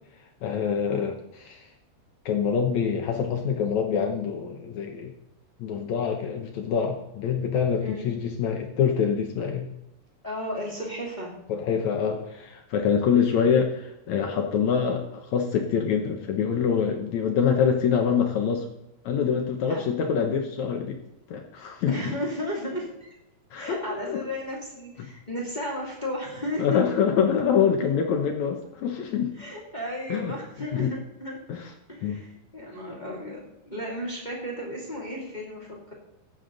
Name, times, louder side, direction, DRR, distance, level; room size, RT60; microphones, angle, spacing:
voice 1, 0.4-1.7 2.2-5.1 5.6-9.7 11.5-18.7 19.0-21.0 21.3-22.0 23.5-23.8 24.1-24.2 26.6-29.3 30.1-30.3 30.7-30.9 31.5-31.7 32.0-32.2, left 7 dB, 80° left, 3 dB, 1.6 m, -25 dB
voice 2, 7.8-8.1 10.2-11.4 19.7-19.8 21.9-23.1 23.5-26.8 29.3-31.4 31.9-35.9, equal, 15° left, -2 dB, 2.0 m, -34 dB
15.0 x 9.4 x 4.0 m, 0.87 s
omnidirectional pair, 4.8 m